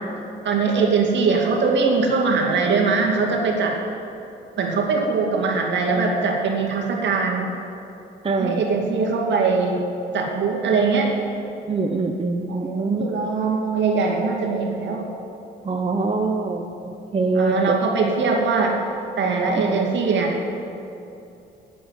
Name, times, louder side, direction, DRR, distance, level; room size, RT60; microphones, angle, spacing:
voice 1, 0.4-3.8 4.6-7.5 8.3-9.9 10.1-11.1 12.5-15.1 17.4-18.8 19.2-20.4, right 4 dB, 65° right, 0 dB, 2.2 m, -21 dB
voice 2, 8.2-8.6 11.7-13.3 15.6-18.1 19.5-20.0, right 3 dB, 30° right, 5 dB, 0.8 m, -24 dB
9.1 x 8.5 x 8.8 m, 2.8 s
cardioid pair, 90°, 20 cm